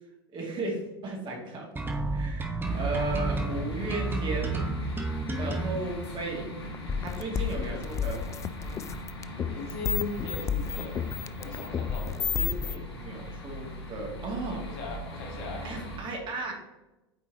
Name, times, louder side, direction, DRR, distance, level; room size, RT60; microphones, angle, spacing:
voice 1, 0.3-1.7 2.1-4.6 5.4-6.5 7.0-8.2 12.3-14.6 15.6-16.5, right 2 dB, 35° right, 0 dB, 2.3 m, -35 dB
sound 1, 1.8-5.8, right 3 dB, 15° right, 1.1 m, -30 dB
sound 2, 2.6-16.0, left 1 dB, 80° left, 1.7 m, -40 dB
sound 3, 6.7-12.8, left 8 dB, 20° left, 0.3 m, -31 dB
voice 2, 9.4-11.0 11.4-12.2 14.6-15.6, left 2 dB, 60° left, 1 dB, 2.0 m, -38 dB
8.4 x 4.6 x 2.8 m, 1.0 s
hypercardioid pair, 85°, 14 cm